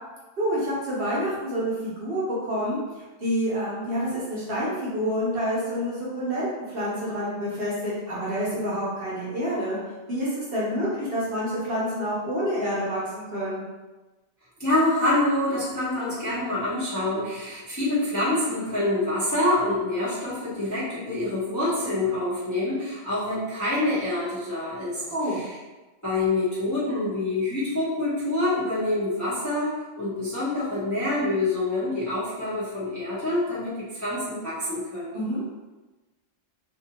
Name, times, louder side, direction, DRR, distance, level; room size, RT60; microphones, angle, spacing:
voice 1, 0.4-2.8 3.2-9.8 10.1-13.6 25.0-25.4 35.1-35.4, equal, 55° right, -7 dB, 1.0 m, -28 dB
voice 2, 14.6-25.0 25.3-25.5 26.0-35.2, left 2 dB, 15° left, -11 dB, 0.8 m, -26 dB
2.6 x 2.6 x 2.8 m, 1.2 s
omnidirectional pair, 1.3 m